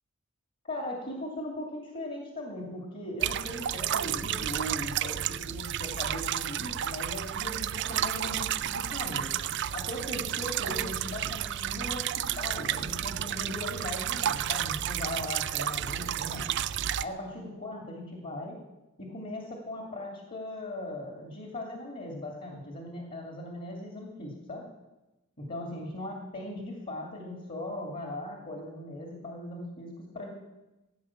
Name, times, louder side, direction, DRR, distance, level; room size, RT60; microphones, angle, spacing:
voice 1, 0.6-9.3 9.7-16.5 17.0-18.6 19.0-24.7 25.4-30.3, left 1 dB, 45° left, 1 dB, 2.5 m, -39 dB
sound 1, 3.2-17.0, right 10 dB, 55° right, 0.4 m, -31 dB
16.5 x 9.3 x 7.2 m, 1.0 s
head